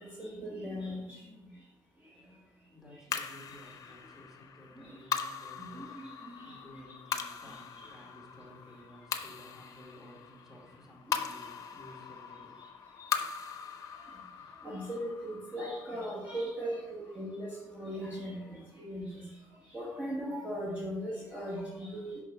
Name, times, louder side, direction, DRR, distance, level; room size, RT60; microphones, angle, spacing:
voice 1, 0.0-1.2 4.8-5.0 5.6-6.6 7.4-7.9 13.0-13.1 14.6-19.3 19.7-22.2, equal, 20° right, -5 dB, 1.4 m, -39 dB
voice 2, 2.2-13.0, left 1 dB, 5° right, -2 dB, 2.1 m, -55 dB
sound 1, 3.1-17.6, left 7 dB, 45° left, 0.7 m, -41 dB
6.4 x 5.5 x 3.8 m, 1.1 s
cardioid pair, 115°, 8 cm